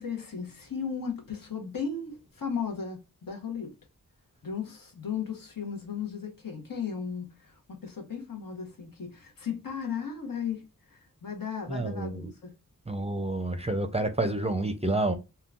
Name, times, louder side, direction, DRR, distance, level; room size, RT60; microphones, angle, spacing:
voice 1, 0.0-3.7 4.4-10.6 10.9-12.5, left 6 dB, 70° left, 0.9 m, -36 dB
voice 2, 11.7-12.3 12.9-15.2, right 2 dB, 20° right, 0.5 m, -29 dB
3.6 x 2.3 x 2.2 m
wide cardioid pair, 50°, 35 cm